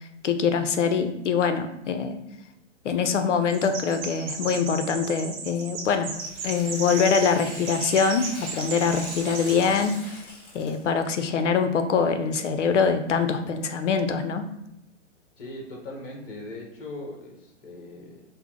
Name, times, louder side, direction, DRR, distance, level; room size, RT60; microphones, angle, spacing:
voice 1, 0.2-2.2 2.8-6.1 6.4-10.2 10.5-14.5, left 6 dB, 75° left, 8 dB, 0.6 m, -24 dB
Chirp tweet, 3.5-10.0, right 4 dB, 30° right, 0.7 m, -35 dB
Tearing, 6.1-10.9, left 1 dB, 15° left, 0.5 m, -42 dB
voice 2, 15.4-18.2, left 1 dB, 45° left, 1 dB, 1.0 m, -39 dB
5.6 x 2.0 x 3.1 m, 0.87 s
hypercardioid pair, 140°, 37 cm